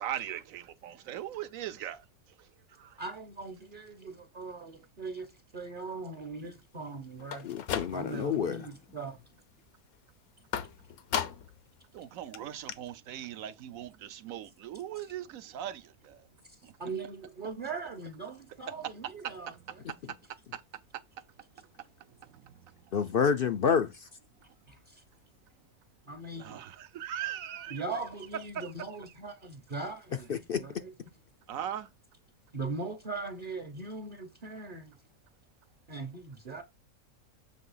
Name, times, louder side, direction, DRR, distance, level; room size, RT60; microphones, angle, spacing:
voice 1, 0.0-2.0 2.8-3.0 8.1-8.3 11.9-16.2 16.6-16.7 18.8-20.2 20.5-20.6 22.3-22.5 26.3-27.8 28.5-28.7 31.5-31.9, right 11 dB, 70° right, 1.1 m, -40 dB
voice 2, 3.0-7.5 7.9-9.2 16.5-19.5 24.7-25.0 26.1-26.6 27.7-30.3 30.5-30.9 32.5-35.0 35.9-36.6, right 3 dB, 40° right, 0.9 m, -40 dB
sound 1, 7.2-8.4 8.7-9.2 10.5-11.6 12.0-12.1 12.3-12.4 12.7-12.8, left 9 dB, 80° left, 1.3 m, -36 dB
voice 3, 7.4-8.6 22.9-24.1 30.3-30.6, left 6 dB, 65° left, 0.5 m, -28 dB
7.5 x 3.3 x 5.5 m
omnidirectional pair, 1.5 m